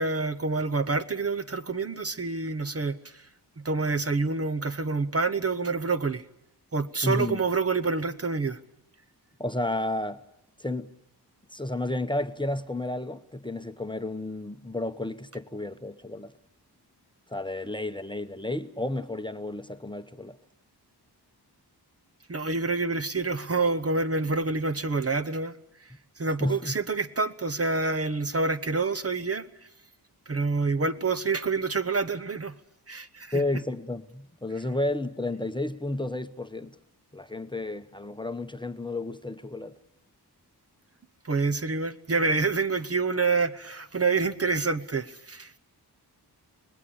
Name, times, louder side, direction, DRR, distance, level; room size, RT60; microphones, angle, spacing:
voice 1, 0.0-3.3 3.6-6.2 6.7-8.6 22.3-25.5 25.8-25.9 26.2-29.5 30.3-32.6 32.9-33.4 41.2-45.6, right 4 dB, 35° right, 1.0 m, -27 dB
voice 2, 7.0-7.4 9.4-10.2 10.6-10.9 11.5-16.3 17.3-20.4 26.4-26.8 33.3-36.8 37.1-39.8, left 1 dB, 10° left, 1.0 m, -32 dB
25.5 x 19.5 x 8.6 m
wide cardioid pair, 85°, 40 cm